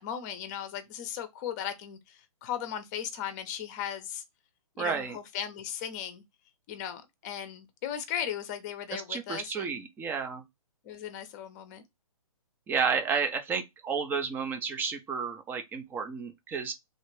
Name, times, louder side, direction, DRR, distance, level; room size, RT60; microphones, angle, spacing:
voice 1, 0.0-4.2 4.8-6.2 6.7-9.8 10.8-11.8, left 9 dB, 30° left, 0.7 m, -37 dB
voice 2, 4.8-5.2 8.9-10.4 12.7-16.7, right 6 dB, 10° right, 0.5 m, -31 dB
3.2 x 2.4 x 3.1 m
hypercardioid pair, 140°, 19 cm